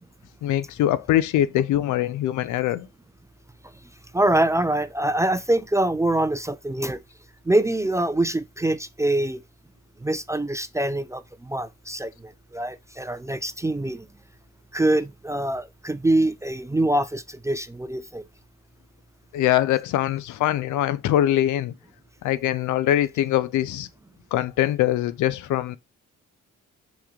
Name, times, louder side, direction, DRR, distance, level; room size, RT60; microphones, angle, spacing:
voice 1, 0.4-2.9 19.3-21.7 22.2-23.9 24.3-25.8, left 12 dB, 80° left, 0.5 m, -23 dB
voice 2, 4.1-7.0 7.5-9.4 10.0-14.1 14.7-18.2, right 1 dB, 10° right, 0.3 m, -24 dB
3.5 x 3.1 x 4.9 m
cardioid pair, 90°, 30 cm